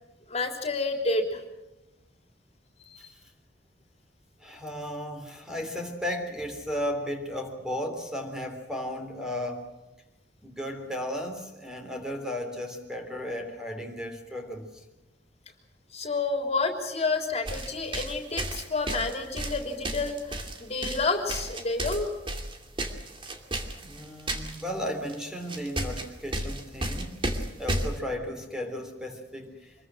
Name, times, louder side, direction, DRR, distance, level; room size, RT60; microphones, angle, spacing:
voice 1, 0.3-1.4 2.9-3.0 15.9-22.1, left 3 dB, 40° left, 4 dB, 3.4 m, -29 dB
voice 2, 4.4-9.6 10.4-14.7 23.8-27.1 27.6-29.7, left 1 dB, 5° right, 4 dB, 3.4 m, -35 dB
sound 1, 17.5-24.6 25.1-25.2 25.5-28.0, right 1 dB, 30° right, 2.6 m, -33 dB
26.0 x 22.5 x 6.3 m, 1.0 s
head